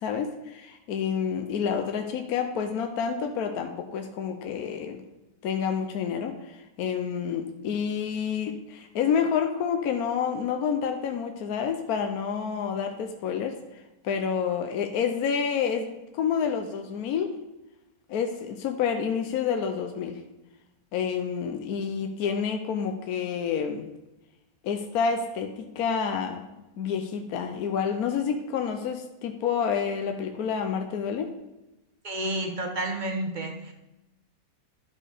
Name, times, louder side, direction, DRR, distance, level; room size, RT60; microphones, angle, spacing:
voice 1, 0.0-5.0 5.4-13.6 14.0-17.4 18.1-20.2 20.9-23.9 24.6-26.4 26.8-31.3, left 7 dB, 70° left, 5 dB, 1.1 m, -28 dB
voice 2, 32.0-33.7, right 1 dB, 35° right, 3 dB, 0.9 m, -30 dB
12.0 x 4.3 x 4.9 m, 0.99 s
omnidirectional pair, 1.9 m